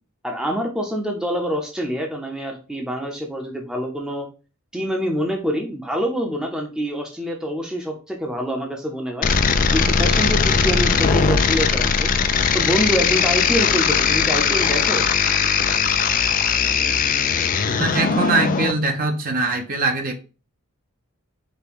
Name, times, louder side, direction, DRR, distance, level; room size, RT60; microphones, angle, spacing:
voice 1, 0.2-4.3 4.7-9.3 9.7-15.1, equal, 5° right, 1 dB, 0.7 m, -26 dB
sound 1, 9.2-18.7, left 6 dB, 40° left, 0.4 m, -19 dB
voice 2, 17.8-20.2, right 3 dB, 40° right, 5 dB, 0.7 m, -22 dB
5.1 x 2.2 x 4.6 m, 0.34 s
head